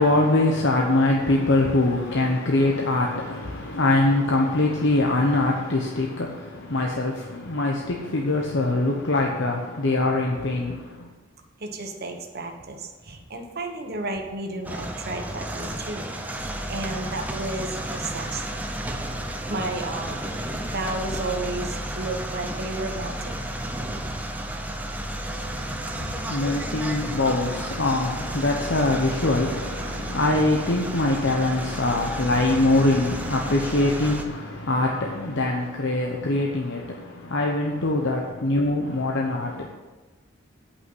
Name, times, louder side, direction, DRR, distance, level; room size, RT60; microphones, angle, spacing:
voice 1, 0.0-6.3 6.7-10.7 26.3-36.8 37.3-39.7, left 2 dB, 65° left, 0 dB, 1.0 m, -23 dB
voice 2, 11.6-16.1 16.7-18.4 19.5-20.2 20.7-23.5, right 2 dB, 55° right, 3 dB, 1.3 m, -32 dB
sound 1, 14.6-34.2, right 1 dB, 10° right, 0.8 m, -32 dB
8.6 x 5.7 x 7.9 m, 1.3 s
head